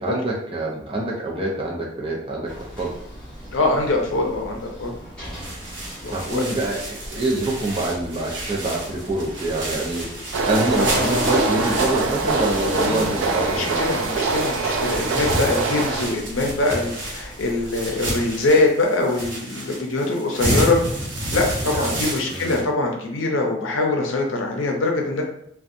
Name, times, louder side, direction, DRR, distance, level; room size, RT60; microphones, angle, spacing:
voice 1, 0.0-3.0 6.1-10.1 10.5-13.8 21.6-22.0 22.3-22.6, right 2 dB, 25° right, -2 dB, 0.5 m, -26 dB
sound 1, 2.4-18.4, equal, 5° left, 0.9 m, -39 dB
voice 2, 3.5-4.9 6.0-6.4 10.8-11.7 12.7-13.2 13.5-20.8 21.3-25.2, left 2 dB, 80° left, 1 dB, 0.6 m, -23 dB
sound 2, 5.2-22.6, right 1 dB, 70° right, 0.8 m, -31 dB
sound 3, 10.3-16.1, right 3 dB, 85° right, 0.4 m, -24 dB
2.6 x 2.2 x 2.5 m, 0.70 s
head